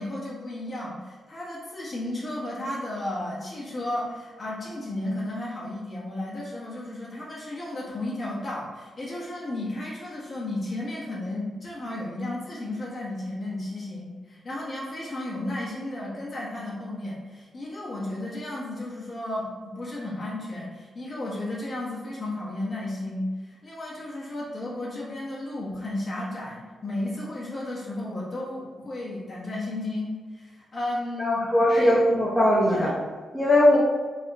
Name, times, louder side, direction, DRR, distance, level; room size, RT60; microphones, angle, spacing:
voice 1, 0.0-32.0 32.7-32.9 33.7-33.8, left 1 dB, 35° left, -6 dB, 1.1 m, -33 dB
voice 2, 31.2-32.9 33.3-33.8, left 1 dB, 10° left, -9 dB, 0.7 m, -20 dB
3.5 x 3.0 x 3.4 m, 1.4 s
wide cardioid pair, 155°, 0 cm